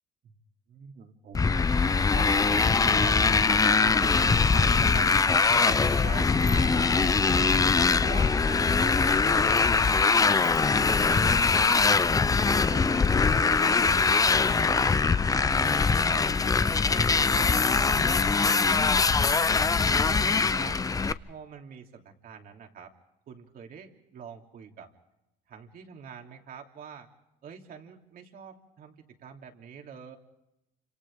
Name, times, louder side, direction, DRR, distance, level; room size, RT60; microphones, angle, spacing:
voice 1, 0.7-1.6 1.9-7.6 8.0-12.1 12.5-16.4 16.8-19.6 20.1-20.8 21.3-22.9 23.3-24.9 25.5-27.1 27.4-30.2, right 6 dB, 60° right, 3 dB, 3.1 m, -44 dB
Motorcycle, 1.4-21.1, left 4 dB, 20° left, 0.7 m, -22 dB
29.0 x 26.5 x 3.7 m, 0.88 s
cardioid pair, 110°, 17 cm